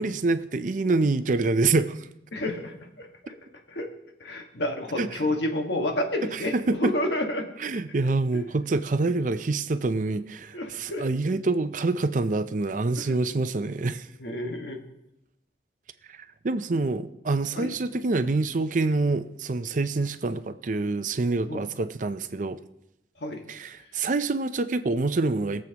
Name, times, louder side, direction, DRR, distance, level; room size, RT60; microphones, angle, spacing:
voice 1, 0.0-2.1 5.0-5.2 6.2-7.0 7.6-14.1 16.1-22.6 23.5-25.6, right 3 dB, 45° right, 0.5 m, -26 dB
voice 2, 2.3-3.4 3.7-3.9 4.2-6.5 6.8-7.5 8.3-8.4 10.5-11.1 12.9-13.2 14.2-14.8 17.5-17.7 21.5-21.6 23.2-23.4, left 1 dB, 75° left, 1.7 m, -30 dB
21.5 x 7.6 x 3.0 m
head